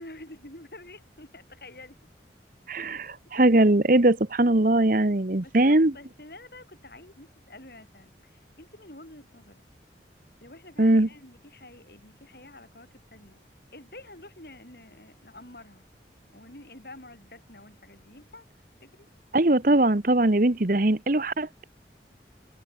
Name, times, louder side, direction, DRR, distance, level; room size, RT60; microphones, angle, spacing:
voice 1, 0.0-2.0 5.4-9.6 10.4-13.4 13.7-15.8 16.3-18.5 18.8-19.1, left 2 dB, 55° left, 5.6 m, -48 dB
voice 2, 2.7-5.9 10.8-11.1 19.3-21.6, right 2 dB, 50° right, 1.1 m, -21 dB
head